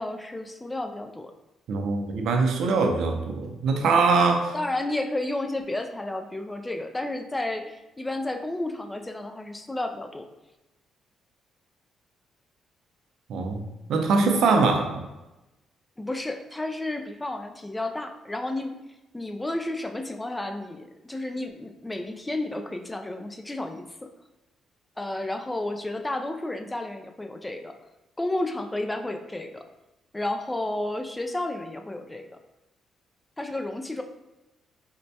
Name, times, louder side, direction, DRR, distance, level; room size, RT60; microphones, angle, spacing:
voice 1, 0.0-1.3 4.5-10.3 16.0-18.8 19.1-24.1 25.0-27.8 28.2-29.6 30.1-32.3 33.4-34.0, left 2 dB, 15° left, 5 dB, 0.3 m, -32 dB
voice 2, 1.7-4.5 13.3-15.0, right 4 dB, 75° right, 4 dB, 0.5 m, -23 dB
4.2 x 2.2 x 2.7 m, 0.99 s
cardioid pair, 90°, 0 cm